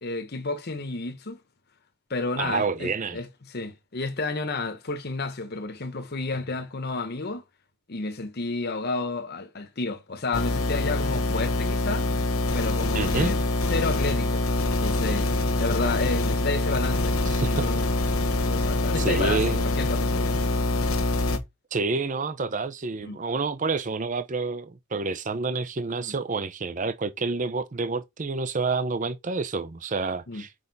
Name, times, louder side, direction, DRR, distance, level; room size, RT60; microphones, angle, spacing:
voice 1, 0.0-1.4 2.1-7.4 7.9-12.1 12.5-13.4 13.7-15.3 15.6-17.9 18.4-20.8 23.0-23.2 26.0-26.1 30.3-30.4, left 3 dB, 50° left, 1.0 m, -31 dB
voice 2, 2.4-3.2 12.9-13.3 17.3-17.7 19.0-19.6 21.7-30.5, right 4 dB, 35° right, 0.6 m, -28 dB
sound 1, 10.3-21.4, left 2 dB, 85° left, 1.3 m, -25 dB
6.4 x 5.1 x 4.0 m
head